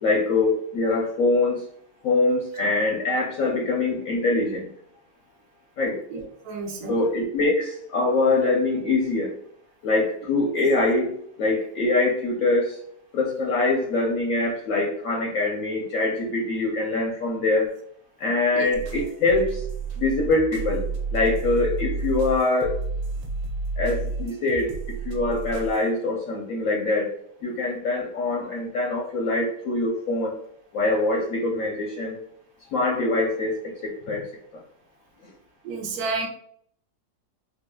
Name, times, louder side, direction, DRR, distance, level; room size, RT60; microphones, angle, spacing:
voice 1, 0.0-1.6 2.0-4.7 5.8-6.0 6.9-9.3 9.8-11.1 11.4-12.8 13.1-17.7 18.2-19.6 20.0-20.8 21.1-22.8 23.8-27.1 27.4-30.4 30.7-32.2 32.7-34.3, left 2 dB, 65° left, -2 dB, 0.8 m, -24 dB
voice 2, 6.1-7.0 18.5-18.7 35.6-36.3, right 3 dB, 65° right, 2 dB, 1.1 m, -30 dB
sound 1, 18.7-25.9, right 4 dB, 85° right, 1.3 m, -31 dB
4.0 x 2.5 x 2.2 m, 0.64 s
omnidirectional pair, 1.9 m